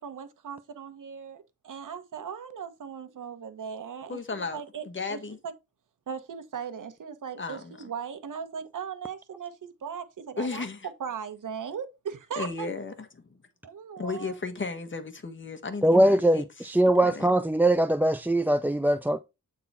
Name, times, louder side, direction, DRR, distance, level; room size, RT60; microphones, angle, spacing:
voice 1, 0.0-5.2 5.4-5.5 6.1-10.7 11.0-12.7 13.6-14.4, right 7 dB, 70° right, 1.3 m, -38 dB
voice 2, 4.1-5.4 7.4-7.8 10.4-10.9 12.4-13.3 14.0-16.4 17.0-17.3, left 4 dB, 35° left, 1.5 m, -35 dB
voice 3, 15.8-19.2, right 1 dB, 5° right, 0.4 m, -22 dB
8.6 x 4.0 x 4.2 m
cardioid pair, 85°, 32 cm